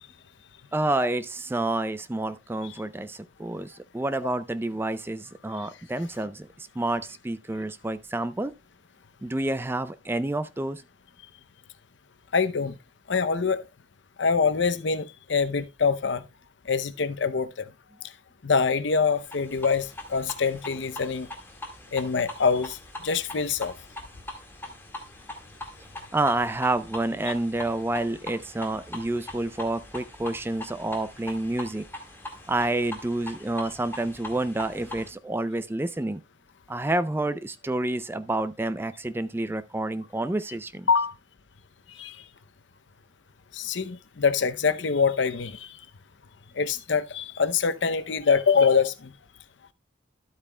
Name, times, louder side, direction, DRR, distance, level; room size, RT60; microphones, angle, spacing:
voice 1, 0.7-8.5 9.2-10.8 26.1-31.8 32.5-36.2 36.7-40.9, right 2 dB, 10° right, 0.4 m, -29 dB
voice 2, 12.3-12.8 13.1-13.6 14.2-16.2 16.7-17.7 18.4-21.3 21.9-22.8 23.0-23.7 40.9-41.1 41.9-42.2 43.5-45.8 46.6-49.1, left 5 dB, 70° left, 0.7 m, -24 dB
sound 1, 19.2-35.1, left 1 dB, 10° left, 1.8 m, -42 dB
12.0 x 8.5 x 2.2 m
head